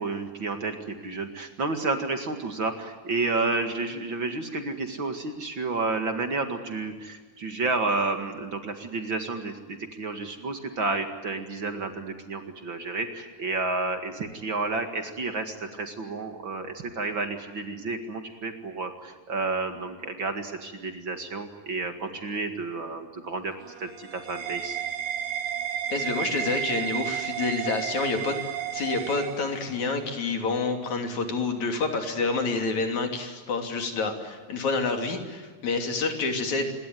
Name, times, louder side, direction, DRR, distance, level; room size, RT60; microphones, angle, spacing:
voice 1, 0.0-23.5 23.8-24.8, right 3 dB, 40° right, 6 dB, 2.5 m, -31 dB
sound 1, 23.5-30.0, right 9 dB, 75° right, 3.3 m, -32 dB
voice 2, 25.9-28.4 28.7-36.7, left 4 dB, 65° left, 5 dB, 4.3 m, -28 dB
26.5 x 22.5 x 9.4 m, 1.4 s
omnidirectional pair, 3.5 m